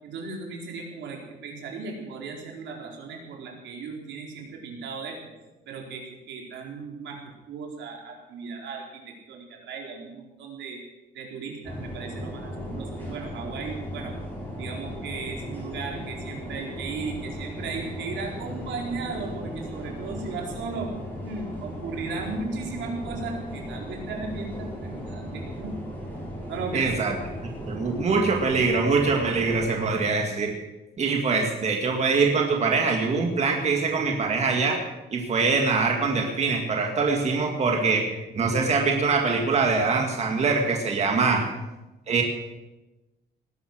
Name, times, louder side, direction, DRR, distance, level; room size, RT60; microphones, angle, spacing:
voice 1, 0.0-5.3 5.7-10.8 11.1-14.1 14.6-20.9 21.2-25.7 26.5-27.0 41.1-41.4, right 4 dB, 85° right, 0 dB, 4.3 m, -36 dB
sound 1, 11.6-29.6, equal, 10° left, 6.3 m, -36 dB
voice 2, 26.7-27.1 27.7-30.5 31.0-34.8 35.1-38.0 38.3-41.4 42.1-42.2, right 4 dB, 35° right, 2 dB, 2.0 m, -23 dB
19.0 x 11.0 x 6.3 m, 1.1 s
cardioid pair, 145°, 19 cm